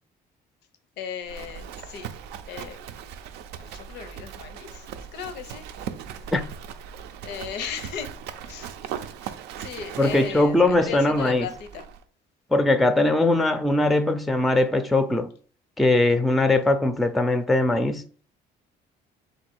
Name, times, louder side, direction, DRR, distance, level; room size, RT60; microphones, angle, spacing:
voice 1, 1.0-2.1 2.5-2.8 3.6-5.7 7.2-8.1 8.4-8.8 9.2-9.3 9.6-11.9, left 7 dB, 80° left, 0.6 m, -36 dB
Livestock farm animals working animals, 1.2-12.0, right 8 dB, 90° right, 0.4 m, -39 dB
voice 2, 10.0-11.5 12.5-15.3 15.8-18.0, left 2 dB, ahead, 0.4 m, -21 dB
3.8 x 2.6 x 4.4 m
cardioid pair, 110°, 17 cm